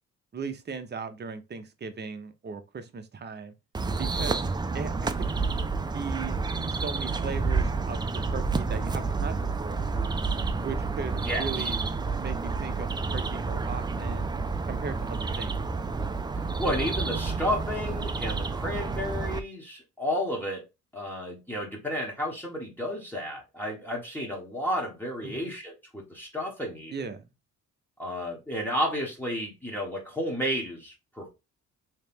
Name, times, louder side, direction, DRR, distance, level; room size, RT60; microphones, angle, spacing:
voice 1, 0.3-3.5 4.0-4.4 4.7-5.4 5.8-6.4 6.7-9.8 10.6-11.8 12.1-14.3 14.7-15.5 25.2-25.5 26.9-27.3, right 5 dB, 35° right, 0.7 m, -38 dB
sound 1, 3.7-19.4, right 4 dB, 15° right, 0.3 m, -29 dB
voice 2, 11.1-11.7 16.6-20.6 20.9-26.9 28.0-31.3, equal, 5° left, 1.1 m, -32 dB
3.2 x 2.9 x 3.5 m
cardioid pair, 90°, 30 cm